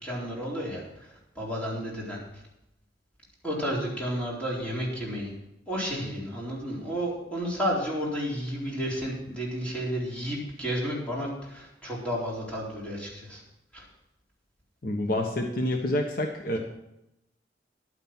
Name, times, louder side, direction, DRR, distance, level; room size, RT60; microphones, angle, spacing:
voice 1, 0.0-2.2 3.4-5.3 5.7-13.4 13.7-13.8, equal, 5° left, -5 dB, 4.0 m, -32 dB
voice 2, 14.8-16.6, left 1 dB, 50° left, 3 dB, 1.2 m, -28 dB
11.0 x 9.4 x 6.1 m, 0.85 s
head